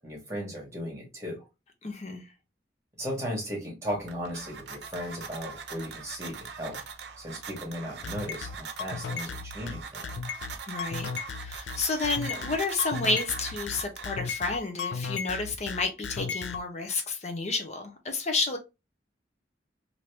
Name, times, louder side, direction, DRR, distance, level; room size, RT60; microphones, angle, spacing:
voice 1, 0.0-1.5 3.0-6.8 7.2-10.1, equal, 15° right, 1.3 m, -36 dB
voice 2, 1.8-2.3 10.6-18.6, left 3 dB, 40° left, 0.5 m, -31 dB
sound 1, 3.9-14.5, right 6 dB, 70° right, 0.6 m, -42 dB
sound 2, 8.0-16.6, left 5 dB, 90° left, 0.4 m, -35 dB
2.9 x 2.6 x 3.2 m
head